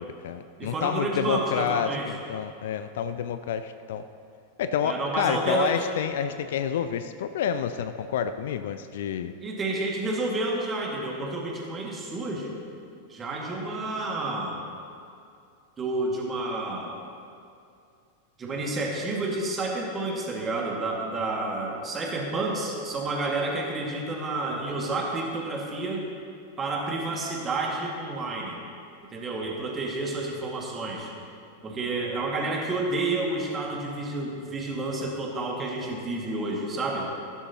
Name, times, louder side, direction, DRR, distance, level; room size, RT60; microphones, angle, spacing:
voice 1, 0.0-4.0 4.6-9.3, left 8 dB, 55° left, 11 dB, 0.4 m, -29 dB
voice 2, 0.6-2.1 4.8-5.8 9.4-12.5 13.1-14.6 15.8-16.9 18.4-26.0 26.6-28.6 29.1-31.2 31.6-37.1, right 2 dB, 20° right, -1 dB, 2.1 m, -30 dB
15.0 x 12.0 x 2.9 m, 2.5 s
figure-of-eight pair, 90°, 0 cm